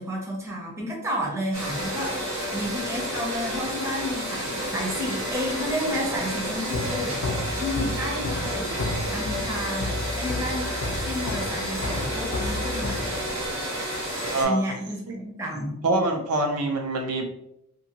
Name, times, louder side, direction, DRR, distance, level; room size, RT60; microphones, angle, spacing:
voice 1, 0.0-2.2 2.5-7.2 7.6-8.8 9.1-10.7 11.0-13.2 14.4-15.8, equal, 15° right, -2 dB, 0.5 m, -31 dB
sound 1, 1.5-14.4, equal, 65° right, 1.1 m, -30 dB
sound 2, 5.5-13.6, left 2 dB, 60° left, 0.4 m, -32 dB
voice 2, 14.3-14.6 15.1-15.2 15.8-17.2, right 2 dB, 80° right, 2 dB, 0.5 m, -25 dB
2.5 x 2.5 x 2.8 m, 0.76 s
head